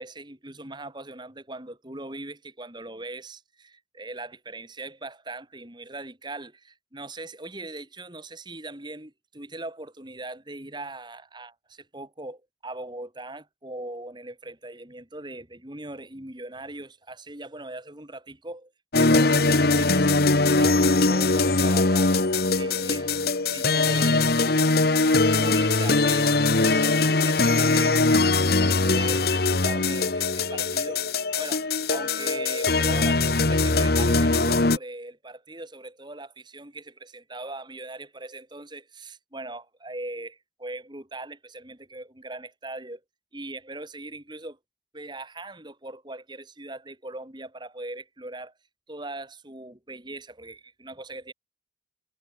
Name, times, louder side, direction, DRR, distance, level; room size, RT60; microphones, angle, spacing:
voice 1, 0.0-18.7 19.0-22.1 22.5-23.1 23.4-24.4 25.3-28.2 28.6-31.0 31.4-43.0 43.3-44.6 44.9-48.5 48.9-51.3, right 2 dB, 25° right, 2.7 m, -40 dB
sound 1, 18.9-34.8, left 3 dB, 60° left, 1.4 m, -21 dB
head